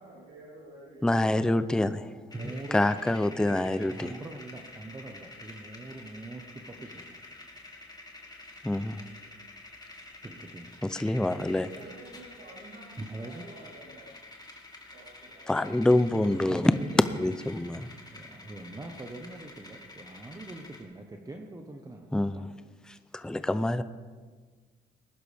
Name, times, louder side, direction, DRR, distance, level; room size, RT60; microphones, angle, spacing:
voice 1, 0.0-1.0 2.3-2.6 11.7-14.1 14.9-15.4, right 2 dB, 65° right, -7 dB, 3.8 m, -50 dB
voice 2, 1.0-2.1 2.7-4.1 8.6-9.0 10.8-11.7 15.5-16.8 17.2-17.9 22.1-22.4 23.1-23.8, left 1 dB, 5° left, 12 dB, 0.5 m, -26 dB
sound 1, 2.3-20.8, left 2 dB, 20° left, 2.1 m, -49 dB
voice 3, 2.3-3.0 3.5-7.2 7.8-8.3 10.2-10.8 13.0-13.5 16.1-17.2 17.7-22.5, right 2 dB, 20° right, 3 dB, 1.1 m, -43 dB
19.5 x 11.0 x 3.5 m, 1.5 s
cardioid pair, 90°, 20 cm